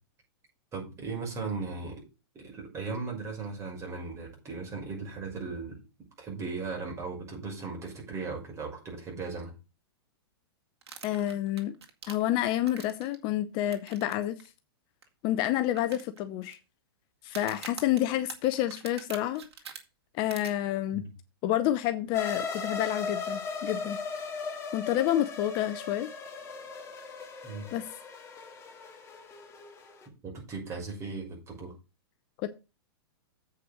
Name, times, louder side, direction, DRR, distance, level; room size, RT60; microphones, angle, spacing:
voice 1, 0.7-2.0 2.3-5.8 6.2-9.5 20.9-21.0 27.4-27.7 30.2-31.7, right 4 dB, 20° right, 6.0 m, -37 dB
sound 1, 10.8-13.2 13.7-14.1 14.4-14.5 15.0-15.1 15.8-16.5 17.2-19.8 20.3-20.5, right 7 dB, 85° right, 2.1 m, -44 dB
voice 2, 11.0-11.8 12.1-14.3 15.2-16.6 17.2-19.5 20.2-21.0 21.4-24.0 24.7-26.1 27.7-27.9 32.4-32.5, left 13 dB, 35° left, 0.7 m, -29 dB
sound 2, 22.1-30.1, left 5 dB, 20° left, 2.3 m, -38 dB
8.0 x 5.7 x 6.1 m
hypercardioid pair, 130°, 13 cm